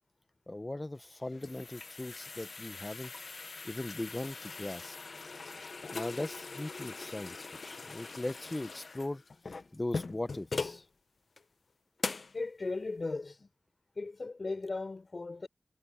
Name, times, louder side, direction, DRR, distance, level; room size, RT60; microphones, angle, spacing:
voice 1, 0.5-3.1 3.4-5.0 5.9-7.4 7.6-9.2 9.7-10.8, left 2 dB, 30° left, 0.8 m, -39 dB
sound 1, 1.0-10.8 11.4-11.5 12.0-12.4, left 4 dB, 80° left, 0.8 m, -41 dB
voice 2, 12.3-13.5 13.9-15.5, left 3 dB, 60° left, 5.1 m, -37 dB
wide cardioid pair, 80°, 0 cm